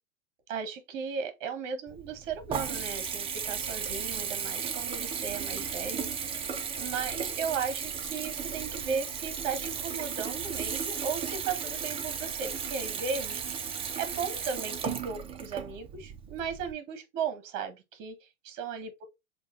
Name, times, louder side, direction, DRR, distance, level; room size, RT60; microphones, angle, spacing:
voice 1, 0.5-13.6 14.0-19.0, right 6 dB, 40° right, 1.1 m, -36 dB
Water tap faucet / Bathtub (filling or washing) / Trickle dribble, 1.9-16.7, right 6 dB, 15° right, 0.5 m, -35 dB
7.2 x 2.4 x 2.6 m
hypercardioid pair, 110°, 41 cm